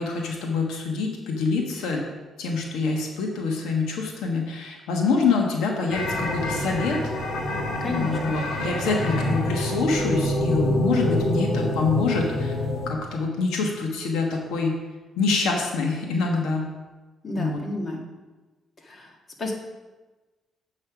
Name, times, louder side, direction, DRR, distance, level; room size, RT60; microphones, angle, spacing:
voice 1, 0.0-2.0 2.4-7.0 7.8-12.5 12.9-14.8 15.2-16.7 17.4-17.6, left 4 dB, 90° left, 1 dB, 1.3 m, -25 dB
sound 1, 5.9-12.9, left 1 dB, 70° left, 2.0 m, -26 dB
voice 2, 7.8-8.2 17.2-18.1 18.8-19.5, left 2 dB, 40° left, 1 dB, 1.7 m, -32 dB
8.1 x 5.6 x 5.9 m, 1.2 s
cardioid pair, 90°, 0 cm